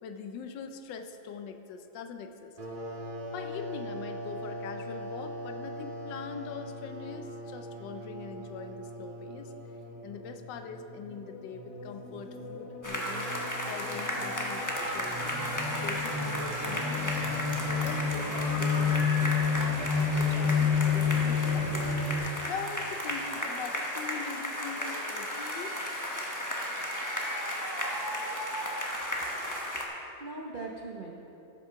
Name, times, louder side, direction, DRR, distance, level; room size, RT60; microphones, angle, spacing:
voice 1, 0.0-2.5 3.3-9.5 10.0-13.3 13.6-17.2 17.7-21.8 22.3-25.9, left 6 dB, 70° left, 7 dB, 1.2 m, -42 dB
sound 1, 2.6-11.0, equal, 30° right, 1.4 m, -41 dB
sound 2, 10.3-22.2, left 5 dB, 90° left, 2.3 m, -31 dB
sound 3, 12.8-29.8, equal, 15° left, 0.7 m, -34 dB
voice 2, 29.2-31.1, right 3 dB, 70° right, -1 dB, 0.4 m, -42 dB
13.5 x 6.2 x 5.7 m, 3.0 s
omnidirectional pair, 2.2 m